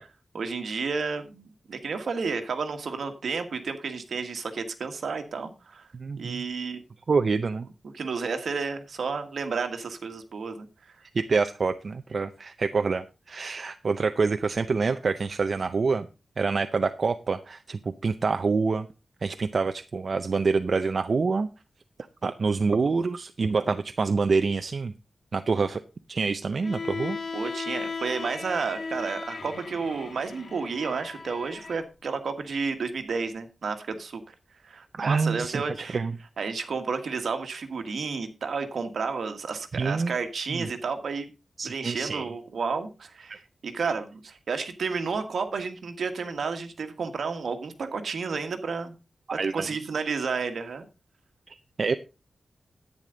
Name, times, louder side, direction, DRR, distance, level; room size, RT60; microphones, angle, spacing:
voice 1, 0.3-5.9 6.2-6.8 7.9-10.7 27.3-34.2 34.6-36.0 36.4-41.3 41.6-48.9 49.3-50.9, right 5 dB, 70° right, 7 dB, 1.5 m, -31 dB
voice 2, 5.9-6.4 7.1-7.7 11.1-16.1 16.4-18.9 19.2-21.5 22.2-24.9 25.3-25.8 26.1-27.2 34.9-36.2 39.7-40.1 40.5-40.7 41.6-42.3 43.3-43.4 49.4-49.7 51.5-51.9, right 4 dB, 45° right, 9 dB, 0.5 m, -26 dB
Bowed string instrument, 26.6-31.8, left 4 dB, 60° left, 1.5 m, -37 dB
10.5 x 9.2 x 3.9 m, 0.30 s
wide cardioid pair, 155°, 0 cm